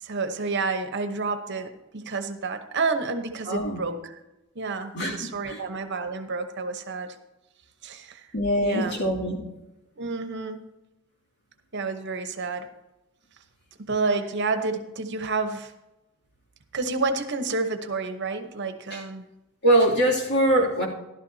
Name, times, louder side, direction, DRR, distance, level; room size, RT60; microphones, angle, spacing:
voice 1, 0.0-4.2 4.5-7.1 7.8-8.3 8.6-9.0 10.0-10.6 11.7-12.7 13.8-15.7 16.7-19.2, right 3 dB, 55° right, 8 dB, 1.0 m, -29 dB
voice 2, 3.4-3.8 4.9-5.6 8.3-9.4 18.9-19.0 19.6-20.9, right 1 dB, 55° left, -2 dB, 2.6 m, -23 dB
14.0 x 12.0 x 2.8 m, 0.99 s
head